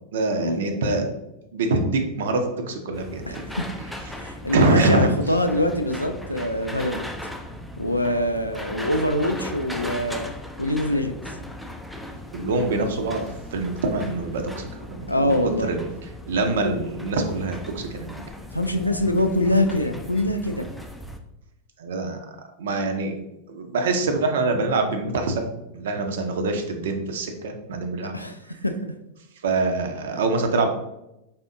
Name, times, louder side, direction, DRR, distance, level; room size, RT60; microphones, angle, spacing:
voice 1, 0.1-1.1 1.5-3.5 4.1-4.2 4.5-5.1 7.5-7.6 12.3-15.9 16.3-18.1 21.8-22.2 22.6-23.1 23.5-28.2 29.4-30.7, right 3 dB, 60° right, 5 dB, 0.6 m, -25 dB
sound 1, 2.9-21.2, left 1 dB, ahead, 0.4 m, -38 dB
voice 2, 3.3-3.7 4.2-7.1 7.8-10.3 10.6-11.2 15.1-15.7 18.5-20.7 28.0-28.4 28.6-28.9, left 1 dB, 85° left, 7 dB, 0.3 m, -24 dB
4.2 x 3.4 x 2.5 m, 0.89 s
figure-of-eight pair, 90°, 0 cm